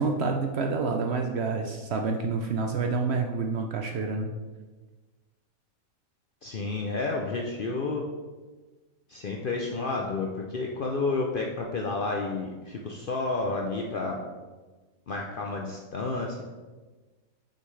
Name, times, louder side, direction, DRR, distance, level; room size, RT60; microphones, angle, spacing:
voice 1, 0.0-4.3, right 4 dB, 65° right, 3 dB, 0.7 m, -28 dB
voice 2, 6.4-8.1 9.1-14.2 15.1-16.4, left 3 dB, 60° left, 0 dB, 0.5 m, -30 dB
6.4 x 5.6 x 3.2 m, 1.3 s
omnidirectional pair, 1.5 m